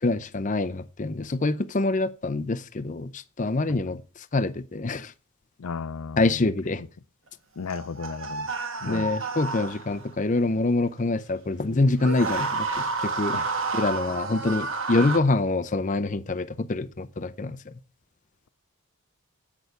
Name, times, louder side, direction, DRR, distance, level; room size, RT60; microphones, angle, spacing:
voice 1, 0.0-4.0 4.3-5.1 6.2-6.8 8.9-13.4 13.7-17.6, left 2 dB, 35° left, 0.6 m, -25 dB
voice 2, 3.7-4.0 5.6-6.5 6.8-6.9 7.6-8.5 8.8-9.1 13.3-13.5, left 5 dB, 80° left, 0.5 m, -35 dB
sound 1, 7.7-10.1 11.9-15.2, right 3 dB, 60° right, 1.5 m, -30 dB
8.3 x 6.4 x 7.9 m
head